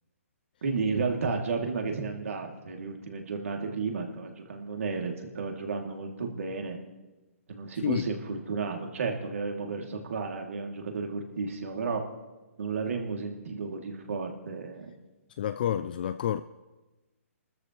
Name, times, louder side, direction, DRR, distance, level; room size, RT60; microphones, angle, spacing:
voice 1, 0.6-6.8 7.5-12.0 12.6-14.9, right 4 dB, 70° right, 2.8 m, -32 dB
voice 2, 15.4-16.4, left 10 dB, 40° left, 0.4 m, -29 dB
27.0 x 13.5 x 3.2 m
hypercardioid pair, 165°, 8 cm